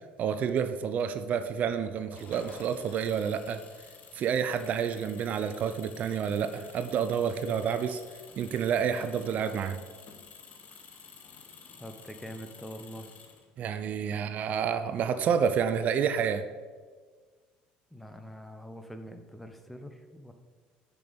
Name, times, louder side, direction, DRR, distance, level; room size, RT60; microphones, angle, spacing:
voice 1, 0.2-3.6 4.1-8.0 8.4-9.8 13.6-16.4, right 7 dB, 50° right, 10 dB, 0.5 m, -29 dB
Engine, 2.1-13.7, left 5 dB, 45° left, 1.0 m, -51 dB
voice 2, 11.8-13.1 17.9-20.3, equal, 5° left, 7 dB, 0.8 m, -44 dB
6.7 x 6.0 x 5.3 m, 1.5 s
cardioid pair, 110°, 3 cm